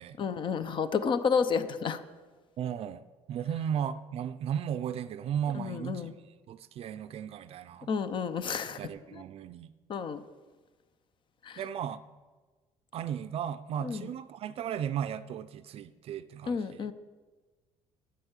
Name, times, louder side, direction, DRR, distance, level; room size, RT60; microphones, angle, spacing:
voice 1, 0.2-2.0 5.5-6.1 7.9-8.8 9.1-9.2 9.9-10.2 11.4-11.6 13.8-14.1 16.5-16.9, left 6 dB, 40° left, 12 dB, 0.8 m, -30 dB
voice 2, 2.6-7.9 8.7-9.7 11.6-12.0 12.9-16.9, right 9 dB, 50° right, 13 dB, 0.5 m, -35 dB
9.9 x 9.1 x 7.3 m, 1.3 s
cardioid pair, 140°, 12 cm